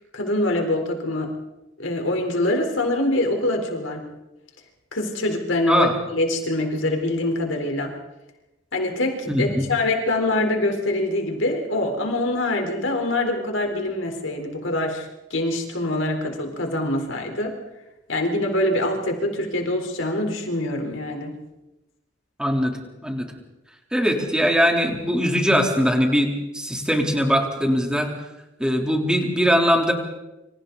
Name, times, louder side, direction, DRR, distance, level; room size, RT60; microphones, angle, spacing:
voice 1, 0.1-1.3 1.8-4.1 4.9-7.9 8.7-17.6 18.1-21.3, left 1 dB, 80° left, 3 dB, 4.2 m, -24 dB
voice 2, 9.3-9.7 22.4-22.8 23.0-23.3 23.9-26.3 26.5-28.1 28.6-29.9, equal, 5° right, 1 dB, 3.6 m, -21 dB
28.5 x 26.0 x 4.1 m, 0.97 s
head